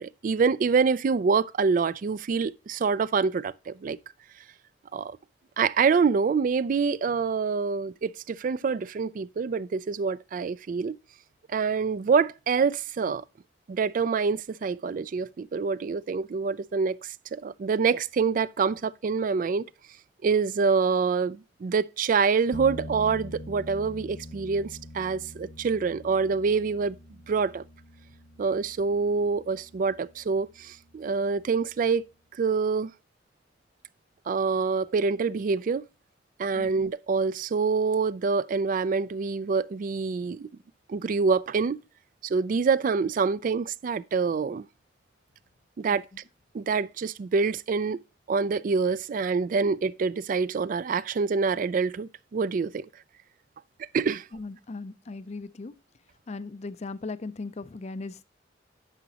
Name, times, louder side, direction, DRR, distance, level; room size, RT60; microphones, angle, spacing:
voice 1, 0.0-4.0 4.9-5.2 5.6-11.0 11.5-13.2 13.7-19.7 20.2-27.0 27.3-27.6 28.4-32.0 32.4-32.9 34.3-35.8 36.4-40.5 40.9-41.8 42.2-44.7 45.8-46.0 46.5-48.0 48.3-52.9 53.9-54.3, right 5 dB, 45° right, 0.3 m, -26 dB
sound 1, 22.5-32.0, left 1 dB, 70° left, 1.3 m, -45 dB
voice 2, 54.3-55.7 56.3-58.2, left 3 dB, 35° left, 0.5 m, -38 dB
9.9 x 6.0 x 2.8 m
head